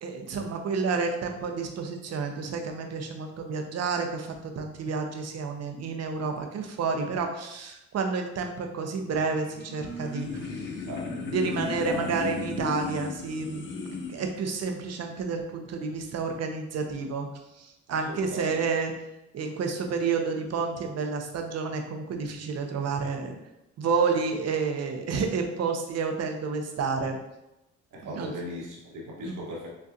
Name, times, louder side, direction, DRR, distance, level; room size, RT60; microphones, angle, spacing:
voice 1, 0.0-10.7 11.1-17.3 17.5-18.9 19.3-23.3 23.8-27.2 28.0-28.3 29.2-29.4, right 5 dB, 55° right, 4 dB, 0.7 m, -30 dB
sound 1, 9.4-14.3, left 4 dB, 40° left, 0.7 m, -35 dB
voice 2, 11.4-12.1 17.9-18.6 27.9-29.7, equal, 85° right, -3 dB, 1.4 m, -38 dB
6.3 x 2.3 x 2.7 m, 0.90 s
cardioid pair, 90°, 30 cm